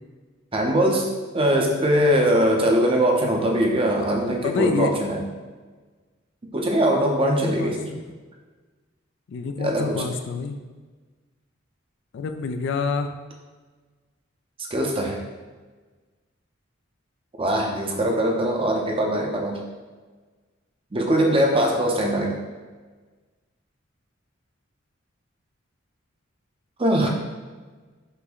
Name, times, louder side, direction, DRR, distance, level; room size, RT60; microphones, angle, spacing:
voice 1, 0.5-1.1 1.3-5.2 6.5-7.9 9.6-10.0 14.7-15.2 17.4-19.6 20.9-22.4 26.8-27.1, right 1 dB, 30° right, 1 dB, 0.6 m, -21 dB
voice 2, 4.4-4.9 7.2-7.7 9.3-10.6 12.1-13.1 27.0-27.1, left 4 dB, 65° left, 8 dB, 0.3 m, -27 dB
5.6 x 2.1 x 3.8 m, 1.4 s
head